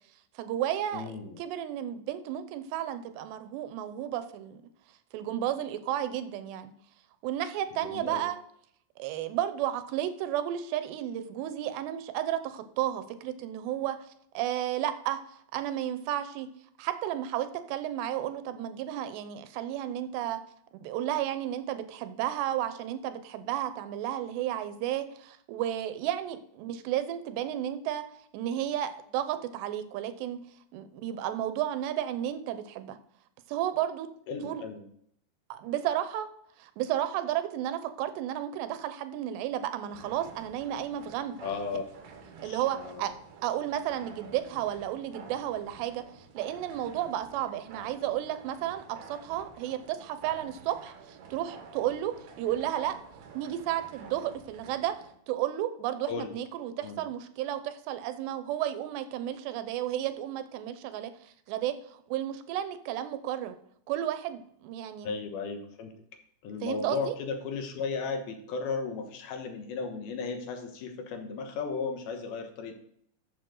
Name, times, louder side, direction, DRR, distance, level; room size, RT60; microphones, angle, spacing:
voice 1, 0.4-1.1 1.4-4.6 5.1-6.7 7.2-8.4 9.0-14.1 14.3-15.2 15.5-16.5 16.8-20.4 20.7-28.1 28.3-30.4 30.7-33.0 33.5-34.1 34.4-34.6 35.5-36.3 36.6-41.4 42.4-43.1 43.4-46.0 46.3-53.0 53.3-55.0 55.3-63.6 63.9-65.2 66.6-67.1, right 11 dB, 90° right, 11 dB, 3.0 m, -32 dB
voice 2, 0.9-1.4 7.7-8.2 34.3-34.9 41.4-41.9 42.4-43.2 56.1-56.3 56.8-57.0 65.0-65.9 66.4-72.8, left 5 dB, 70° left, 5 dB, 2.9 m, -35 dB
sound 1, 39.8-55.1, right 5 dB, 75° right, 3.4 m, -50 dB
13.0 x 7.2 x 3.9 m, 0.68 s
omnidirectional pair, 4.8 m